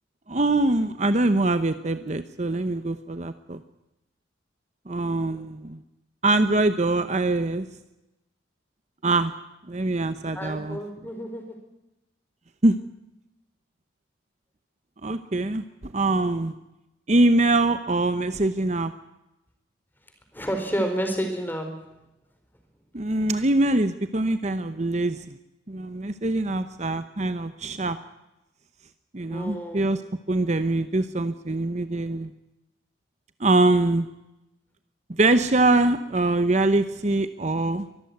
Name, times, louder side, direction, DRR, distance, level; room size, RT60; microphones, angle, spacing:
voice 1, 0.3-3.6 4.9-5.8 6.2-7.7 9.0-9.3 9.7-10.8 12.6-12.8 15.0-15.6 15.9-16.5 17.1-18.9 22.9-25.3 25.7-28.0 29.1-30.0 30.3-32.3 33.4-34.1 35.1-37.9, right 2 dB, 35° right, 10 dB, 0.9 m, -23 dB
voice 2, 4.9-5.5 10.3-11.6 20.3-21.9 29.3-29.9, equal, 10° left, 5 dB, 4.3 m, -30 dB
23.5 x 14.5 x 9.5 m, 0.93 s
head